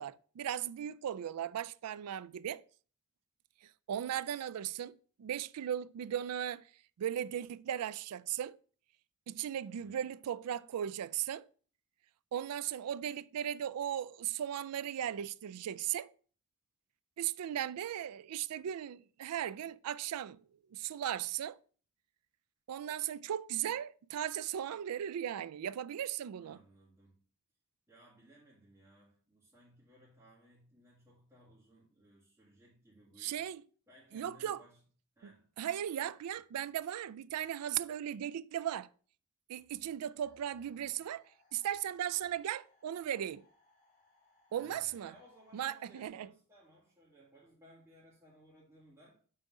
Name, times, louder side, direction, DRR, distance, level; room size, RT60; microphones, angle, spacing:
voice 1, 0.0-2.6 3.9-6.6 7.0-8.6 9.3-11.4 12.3-16.1 17.2-20.4 20.7-21.6 22.7-26.6 33.2-33.6 34.1-34.6 35.2-35.3 35.6-38.9 39.5-41.2 41.5-43.4 44.5-45.1 45.5-46.3, right 10 dB, 80° right, 0.3 m, -37 dB
voice 2, 9.7-10.0 17.5-17.6 26.3-27.2 27.9-33.5 33.9-34.8 35.2-35.5 44.5-49.2, right 1 dB, 15° right, 2.0 m, -61 dB
sound 1, 40.2-46.1, left 3 dB, 35° left, 2.5 m, -70 dB
5.7 x 3.7 x 6.0 m
head